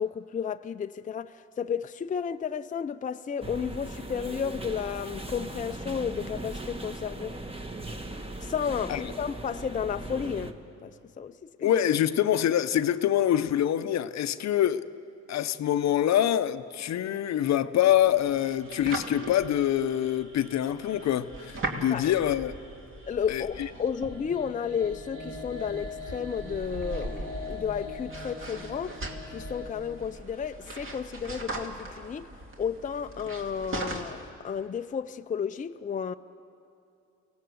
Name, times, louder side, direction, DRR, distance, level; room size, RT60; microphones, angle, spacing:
voice 1, 0.0-7.3 8.4-10.6 10.8-11.7 21.9-22.1 23.1-29.0 29.3-32.3 32.6-36.1, left 7 dB, 25° left, 0.5 m, -32 dB
sound 1, 3.4-10.5, right 2 dB, 20° right, 1.4 m, -39 dB
voice 2, 11.6-14.9 15.3-22.5 23.3-23.7, left 11 dB, 60° left, 0.7 m, -25 dB
sound 2, 17.9-34.3, right 2 dB, 45° right, 2.5 m, -40 dB
sound 3, 18.1-29.7, left 2 dB, 85° right, 3.8 m, -44 dB
24.0 x 18.0 x 7.8 m
cardioid pair, 90°, 30 cm